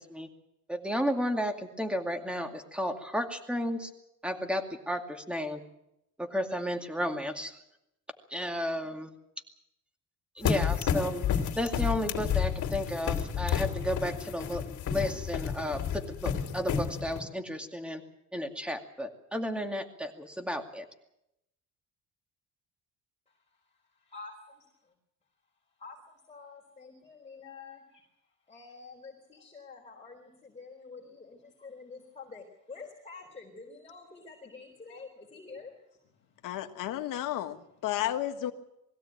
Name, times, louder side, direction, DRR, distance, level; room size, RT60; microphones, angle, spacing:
voice 1, 0.7-3.9 4.2-5.6 6.2-7.5 8.3-9.1 10.4-11.3 11.5-14.6 14.9-18.0 18.3-20.8, equal, 5° right, 5 dB, 2.4 m, -33 dB
sound 1, 10.4-17.2, left 8 dB, 65° left, 3.0 m, -31 dB
voice 2, 23.3-24.9 25.8-36.0, left 4 dB, 20° left, 0 dB, 4.1 m, -48 dB
voice 3, 36.4-38.5, left 12 dB, 85° left, 7 dB, 1.6 m, -32 dB
22.0 x 16.0 x 9.0 m, 0.82 s
cardioid pair, 135°, 32 cm